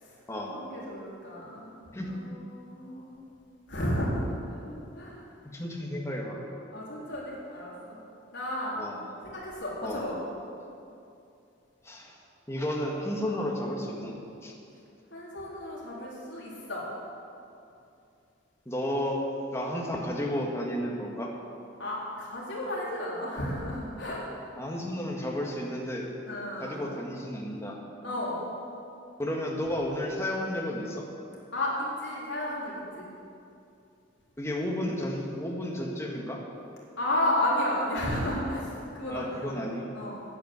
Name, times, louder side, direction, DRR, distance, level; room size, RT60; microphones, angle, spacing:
voice 1, 0.5-1.7 2.0-3.1 3.7-4.2 4.5-5.2 6.7-8.0 8.3-8.8 9.2-10.2 13.2-13.4 15.1-16.9 21.8-24.2 26.3-26.9 28.0-28.5 31.5-33.1 37.0-39.5 39.9-40.2, left 1 dB, 65° left, -6 dB, 4.0 m, -32 dB
voice 2, 5.4-6.5 8.8-9.0 9.8-10.1 11.8-12.2 12.5-14.2 14.4-14.5 18.7-19.2 19.5-21.3 24.6-26.1 26.6-27.8 29.2-31.1 34.4-36.4 39.1-39.9, left 1 dB, 15° left, -1 dB, 1.8 m, -32 dB
11.0 x 10.5 x 8.1 m, 2.6 s
head